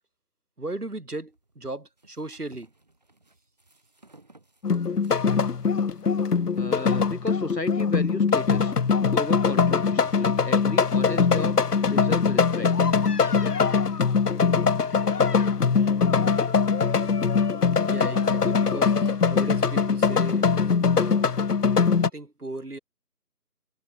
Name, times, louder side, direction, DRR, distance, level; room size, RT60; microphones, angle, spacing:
voice 1, 0.6-2.7 17.9-21.4 21.9-22.8, right 2 dB, 65° right, 5.9 m, -37 dB
sound 1, 1.3-8.3, right 2 dB, 25° right, 7.7 m, -59 dB
sound 2, 4.6-22.1, left 5 dB, 70° left, 0.9 m, -22 dB
voice 2, 6.6-8.7 9.1-12.7, left 2 dB, 90° left, 4.1 m, -34 dB
figure-of-eight pair, 180°, 48 cm